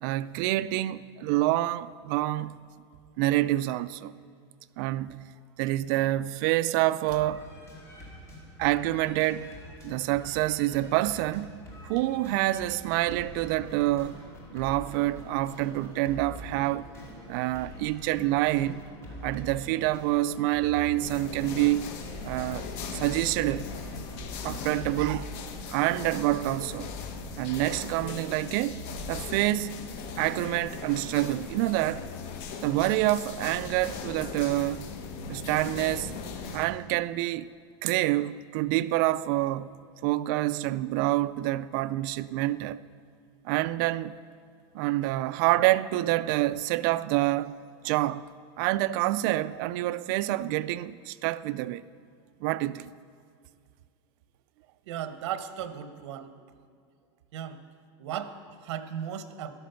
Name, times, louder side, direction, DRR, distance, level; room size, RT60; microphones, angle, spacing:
voice 1, 0.0-2.6 3.2-4.1 4.8-5.3 5.6-7.5 8.6-9.5 9.8-11.5 11.8-14.2 14.5-16.9 17.3-18.8 19.2-21.9 22.2-22.7 22.9-23.7 24.4-25.3 25.7-26.9 27.4-29.7 30.2-32.0 32.6-34.9 35.3-36.1 36.5-37.5 37.8-42.8 43.4-44.2 44.7-47.6 47.8-48.2 48.6-51.8 52.4-52.9, right 16 dB, 45° right, 0.4 m, -27 dB
sound 1, 7.1-25.0, equal, 20° left, 2.6 m, -45 dB
sound 2, 21.0-36.6, left 5 dB, 45° left, 1.2 m, -39 dB
voice 2, 54.9-56.3 57.3-57.6 58.0-59.5, right 9 dB, 80° right, 1.0 m, -36 dB
13.5 x 11.5 x 5.7 m
supercardioid pair, 165°, 15 cm